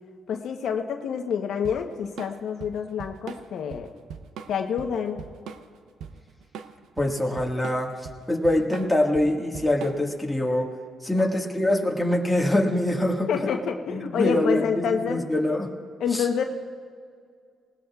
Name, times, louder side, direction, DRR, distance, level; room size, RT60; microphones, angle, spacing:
voice 1, 0.3-3.9 4.5-5.3 13.3-15.2 16.0-16.4, left 7 dB, 70° left, 4 dB, 0.9 m, -27 dB
Drum kit / Drum, 1.6-10.2, right 7 dB, 80° right, 0.7 m, -41 dB
voice 2, 7.0-10.7 11.0-13.5 13.9-15.7 16.1-16.4, left 1 dB, 5° left, -1 dB, 1.7 m, -24 dB
20.0 x 17.5 x 2.4 m, 2.1 s
cardioid pair, 90°, 0 cm